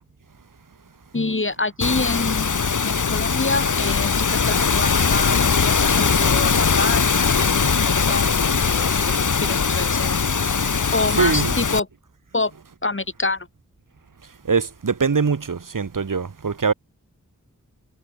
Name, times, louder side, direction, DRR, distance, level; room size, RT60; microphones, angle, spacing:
voice 1, 1.1-9.1 9.5-10.2 10.9-11.9 12.3-12.5 12.8-13.5, left 3 dB, 40° left, 2.9 m, -27 dB
sound 1, 1.8-11.8, left 5 dB, 70° left, 1.6 m, -20 dB
voice 2, 11.1-11.6 14.5-16.7, right 5 dB, 85° right, 2.3 m, -22 dB
wide cardioid pair, 70°, 31 cm